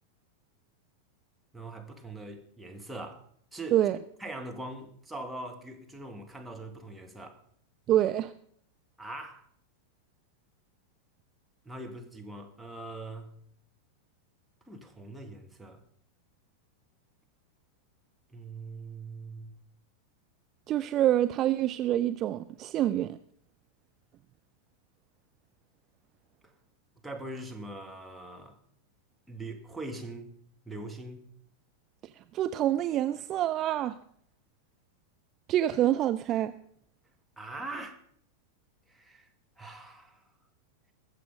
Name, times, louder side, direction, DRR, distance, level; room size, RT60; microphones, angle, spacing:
voice 1, 1.5-3.3 3.5-3.9 4.2-7.4 9.0-9.5 11.7-13.3 14.7-15.8 18.3-19.6 26.4-26.5 27.0-28.6 29.3-30.3 30.7-31.3 37.4-38.1 38.9-39.3 39.6-40.2, right 2 dB, 5° right, 2 dB, 2.0 m, -42 dB
voice 2, 7.9-8.3 20.7-23.2 32.3-34.0 35.5-36.5, right 12 dB, 35° right, 11 dB, 0.5 m, -26 dB
20.5 x 7.6 x 5.3 m, 0.62 s
figure-of-eight pair, 90°, 0 cm